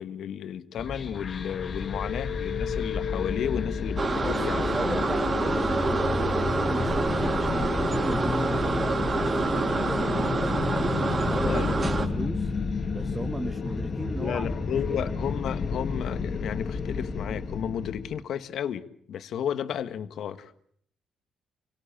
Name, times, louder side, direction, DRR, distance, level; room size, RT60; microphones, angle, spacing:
voice 1, 0.0-5.0 11.3-11.8 14.2-20.5, left 9 dB, 70° left, 12 dB, 1.5 m, -33 dB
sound 1, 0.8-18.2, left 4 dB, 45° left, 2.5 m, -31 dB
sound 2, 4.0-12.1, right 3 dB, 35° right, 3.2 m, -27 dB
voice 2, 4.2-10.6 11.2-12.5 12.9-14.5 14.9-15.4, right 2 dB, 15° right, 7 dB, 1.5 m, -36 dB
27.0 x 18.0 x 8.8 m, 0.65 s
cardioid pair, 90°, 0 cm